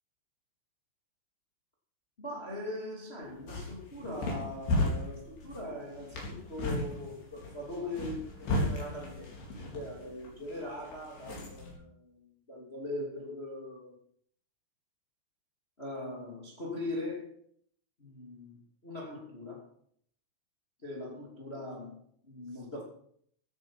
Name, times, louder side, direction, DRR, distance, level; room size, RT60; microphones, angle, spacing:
voice 1, 2.2-14.0 15.8-17.4 18.0-19.7 20.8-22.8, left 1 dB, 20° left, -2 dB, 2.3 m, -41 dB
sound 1, 3.2-11.7, left 1 dB, 70° left, 5.9 m, -36 dB
16.0 x 9.5 x 5.8 m, 0.63 s
omnidirectional pair, 4.9 m